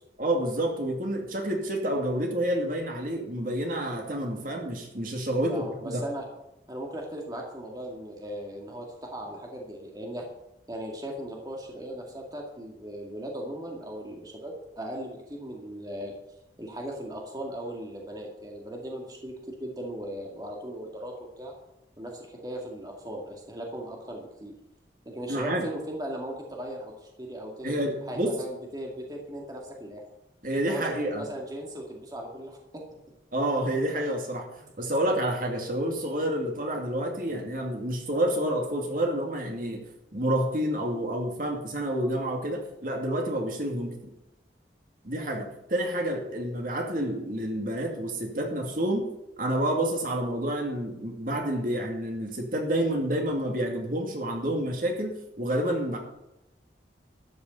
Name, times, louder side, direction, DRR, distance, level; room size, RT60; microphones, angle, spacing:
voice 1, 0.2-6.0 25.3-25.7 27.6-28.3 30.4-31.3 33.3-34.5 34.8-39.8 40.1-43.9 45.0-49.1 49.4-56.0, right 1 dB, 50° right, 1 dB, 2.5 m, -29 dB
voice 2, 5.5-6.3 6.7-10.3 10.7-16.1 16.6-21.5 22.0-24.5 25.1-27.8 28.1-30.0 30.7-32.8 34.6-34.7, right 1 dB, 20° right, 0 dB, 2.1 m, -38 dB
13.0 x 6.9 x 8.2 m, 0.88 s
head